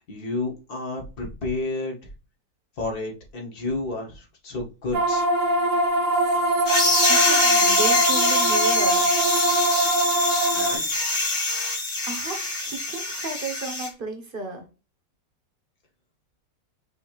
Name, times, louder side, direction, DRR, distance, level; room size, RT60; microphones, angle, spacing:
voice 1, 0.0-2.0 2.8-5.3 10.5-10.9, left 2 dB, 60° left, 0 dB, 1.9 m, -31 dB
sound 1, 4.9-10.8, right 1 dB, 75° right, 1.9 m, -22 dB
sound 2, 6.7-13.9, left 2 dB, 30° left, 1.2 m, -24 dB
voice 2, 7.0-9.1 12.0-14.6, right 3 dB, 35° right, 4 dB, 1.0 m, -33 dB
6.1 x 2.8 x 3.0 m, 0.32 s
omnidirectional pair, 1.9 m